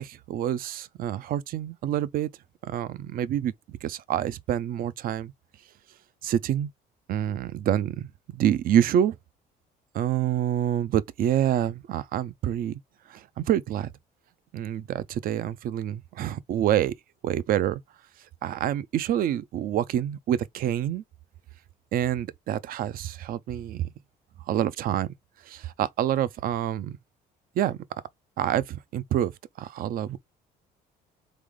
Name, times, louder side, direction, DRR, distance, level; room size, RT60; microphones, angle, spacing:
voice 1, 0.0-2.3 2.6-5.3 6.2-6.7 7.1-9.2 9.9-12.8 13.1-13.9 14.5-16.9 17.2-17.8 18.4-21.0 21.9-23.9 24.5-25.1 25.5-27.0 27.6-27.8 28.4-29.3 29.6-30.2, right 11 dB, 60° right, 0.5 m, -27 dB
3.8 x 3.4 x 3.6 m
cardioid pair, 110°, 17 cm